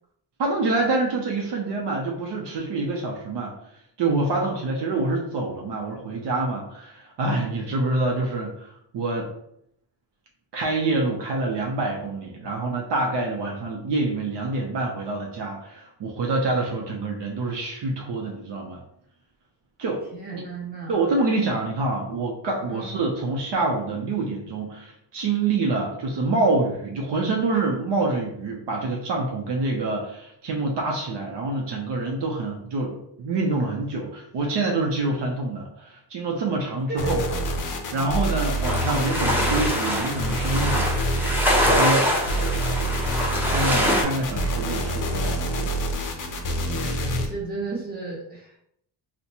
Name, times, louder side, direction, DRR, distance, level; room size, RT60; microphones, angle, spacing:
voice 1, 0.4-3.6 4.0-9.3 10.5-18.8 19.8-20.0 20.3-20.4 20.9-37.2 37.9-40.9 41.6-42.1 43.4-45.5, right 2 dB, 65° right, 0 dB, 0.7 m, -26 dB
voice 2, 4.3-4.7 20.1-21.2 22.7-22.9 36.9-37.4 46.6-48.5, right 3 dB, 20° right, -5 dB, 1.2 m, -34 dB
sound 1, 37.0-47.3, right 1 dB, 45° left, 0.5 m, -27 dB
sound 2, 38.6-44.0, left 1 dB, 5° right, 0.6 m, -24 dB
3.9 x 2.2 x 2.8 m, 0.73 s
wide cardioid pair, 140°, 47 cm